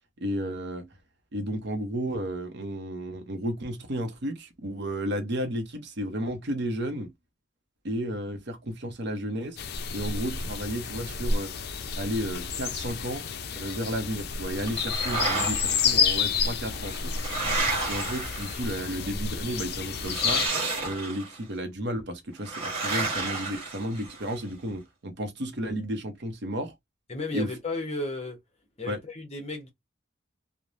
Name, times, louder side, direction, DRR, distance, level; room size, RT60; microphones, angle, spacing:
voice 1, 0.2-0.9 1.3-7.1 7.8-9.6 9.9-11.5 12.0-13.2 13.5-17.1 17.9-20.5 20.8-26.7 27.3-27.5 28.9-29.0, right 1 dB, 55° right, 0.7 m, -32 dB
sound 1, 9.6-20.5, left 6 dB, 55° left, 0.4 m, -30 dB
sound 2, 14.7-15.9 16.7-18.9 20.0-21.4 22.4-24.3, right 3 dB, 30° right, 1.1 m, -31 dB
voice 2, 27.1-28.4 28.8-29.7, left 2 dB, 30° left, 0.8 m, -34 dB
3.1 x 2.1 x 2.5 m
head